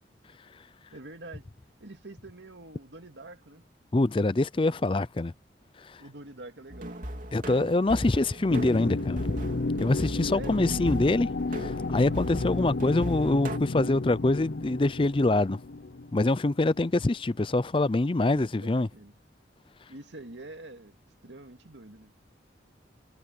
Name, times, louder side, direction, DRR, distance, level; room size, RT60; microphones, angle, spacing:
voice 1, 0.9-1.5 1.8-3.6 6.0-7.1 10.3-10.6 18.3-19.1 19.9-21.0 21.2-22.1, right 2 dB, 85° right, 2.3 m, -46 dB
voice 2, 3.9-5.3 5.8-6.0 7.3-9.2 9.8-15.6 16.1-18.9, left 2 dB, 30° left, 0.5 m, -25 dB
sound 1, 6.7-13.6, right 1 dB, 45° right, 3.0 m, -38 dB
sound 2, 8.5-17.0, left 3 dB, 70° left, 0.6 m, -33 dB
head